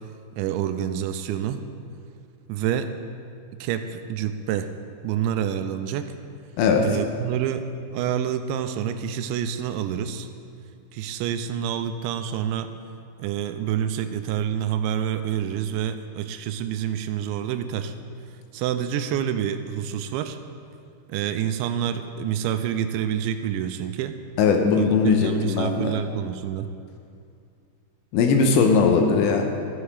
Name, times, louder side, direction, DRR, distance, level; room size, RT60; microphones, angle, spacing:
voice 1, 0.4-1.6 2.5-3.0 3.6-4.7 5.0-6.1 6.8-10.3 10.9-12.7 13.2-17.9 18.5-20.4 21.1-24.2 24.7-26.7, right 9 dB, 85° right, 9 dB, 2.9 m, -27 dB
voice 2, 24.4-26.0 28.1-29.5, left 5 dB, 80° left, 3 dB, 3.0 m, -19 dB
14.0 x 8.0 x 4.9 m, 2.3 s
omnidirectional pair, 5.2 m